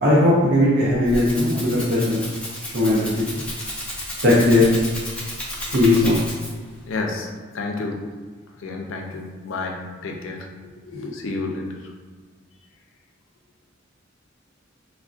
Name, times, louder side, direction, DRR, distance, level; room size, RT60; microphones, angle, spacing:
voice 1, 0.0-2.2 2.6-3.4 4.2-4.7 5.6-6.2, left 1 dB, 60° right, -6 dB, 0.5 m, -18 dB
Rattle (instrument), 0.8-6.7, left 1 dB, 5° left, 0.5 m, -33 dB
voice 2, 6.8-7.3 7.5-8.0 8.6-10.4 10.9-11.6, left 3 dB, 85° left, 1 dB, 0.5 m, -30 dB
3.3 x 2.5 x 2.4 m, 1.5 s
head